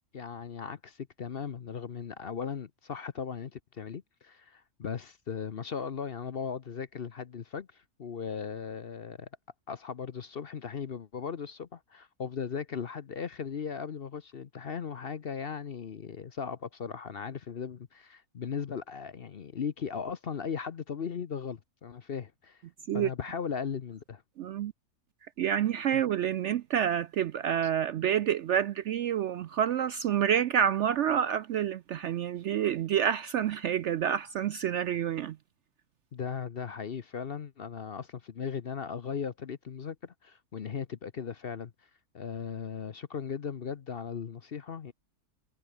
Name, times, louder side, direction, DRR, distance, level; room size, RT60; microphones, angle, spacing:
voice 1, 0.1-9.3 9.7-22.6 22.9-24.2 36.1-41.7 42.1-44.9, left 6 dB, 45° left, 0.9 m, -37 dB
voice 2, 24.4-24.7 25.4-35.4, right 9 dB, 70° right, 0.7 m, -28 dB
omnidirectional pair, 1.6 m